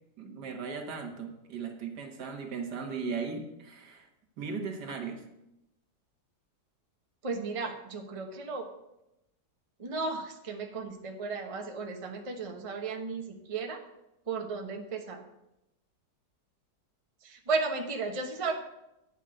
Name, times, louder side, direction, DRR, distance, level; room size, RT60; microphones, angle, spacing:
voice 1, 0.2-4.1 4.4-5.2, right 5 dB, 75° right, 4 dB, 1.9 m, -37 dB
voice 2, 7.2-8.7 9.8-13.8 14.3-15.2 17.2-18.5, right 4 dB, 25° right, 3 dB, 0.9 m, -34 dB
9.9 x 5.5 x 7.7 m, 0.88 s
omnidirectional pair, 1.8 m